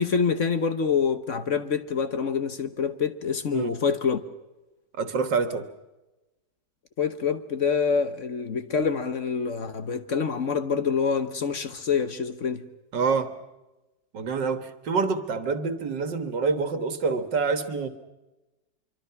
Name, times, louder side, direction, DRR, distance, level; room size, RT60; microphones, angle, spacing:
voice 1, 0.0-4.2 7.0-12.7, left 6 dB, 50° left, 1.3 m, -26 dB
voice 2, 4.9-5.7 12.9-13.3 14.1-17.9, right 4 dB, 85° right, 2.1 m, -26 dB
25.0 x 24.0 x 5.8 m
omnidirectional pair, 1.9 m